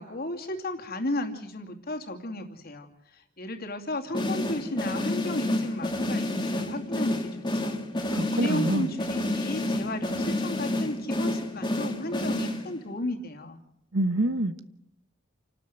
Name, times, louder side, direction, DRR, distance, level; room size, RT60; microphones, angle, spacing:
voice 1, 0.0-7.8 8.3-13.6, left 1 dB, 50° left, 2.7 m, -34 dB
sound 1, 4.1-12.9, left 1 dB, 25° left, 2.1 m, -29 dB
voice 2, 8.1-8.9 13.9-14.6, right 1 dB, 70° right, 1.2 m, -26 dB
29.0 x 12.5 x 8.1 m
head